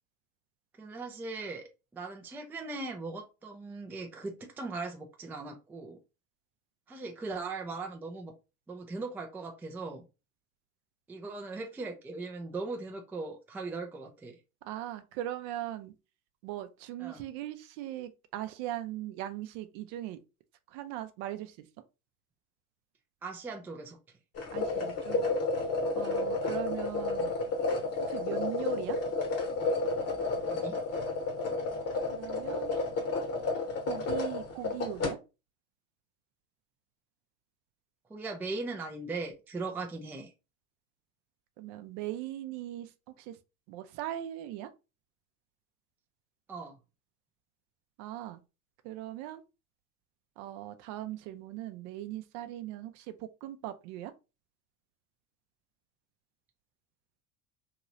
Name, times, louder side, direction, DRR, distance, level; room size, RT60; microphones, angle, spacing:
voice 1, 0.8-1.6 1.9-6.0 6.9-8.3 8.7-10.0 11.1-14.4 17.0-17.3 23.2-24.0 26.4-26.5 30.5-30.8 38.1-40.3 46.5-46.7, right 3 dB, 5° right, 0.4 m, -39 dB
voice 2, 14.6-15.9 16.4-20.2 20.7-21.7 24.5-25.3 26.0-27.3 28.0-29.0 32.1-32.8 33.8-35.2 41.6-42.9 43.2-43.4 43.7-44.7 48.0-48.4 48.8-49.4 50.4-54.1, right 13 dB, 55° right, 0.6 m, -39 dB
sound 1, 24.4-35.1, left 3 dB, 35° left, 1.0 m, -31 dB
3.0 x 2.9 x 2.5 m
hypercardioid pair, 85°, 45 cm